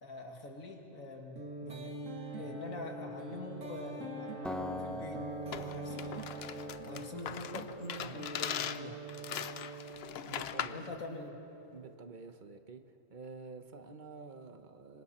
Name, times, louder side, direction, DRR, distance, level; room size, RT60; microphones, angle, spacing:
voice 1, 0.0-2.0 2.4-5.2 5.6-6.1 6.9-9.1 10.7-11.3, left 2 dB, 80° left, 1 dB, 2.6 m, -45 dB
sound 1, 1.4-11.9, right 2 dB, 65° right, 2.1 m, -44 dB
Acoustic guitar, 4.4-7.6, left 1 dB, ahead, 0.7 m, -43 dB
sound 2, 5.5-10.9, left 9 dB, 60° left, 0.8 m, -40 dB
voice 2, 10.3-11.0 11.7-15.0, right 4 dB, 40° right, 8 dB, 1.1 m, -49 dB
25.5 x 25.0 x 4.4 m, 2.8 s
omnidirectional pair, 1.4 m